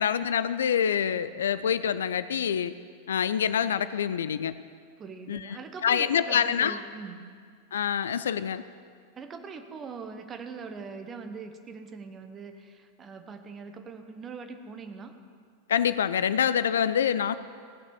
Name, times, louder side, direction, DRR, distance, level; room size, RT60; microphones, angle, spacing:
voice 1, 0.0-2.7 3.1-4.5 5.3-6.8 7.7-8.6 15.7-17.3, left 8 dB, 65° left, 14 dB, 0.4 m, -26 dB
voice 2, 5.0-7.2 9.1-15.1, right 5 dB, 25° right, 7 dB, 1.1 m, -42 dB
17.0 x 6.5 x 7.1 m, 2.1 s
figure-of-eight pair, 90°, 0 cm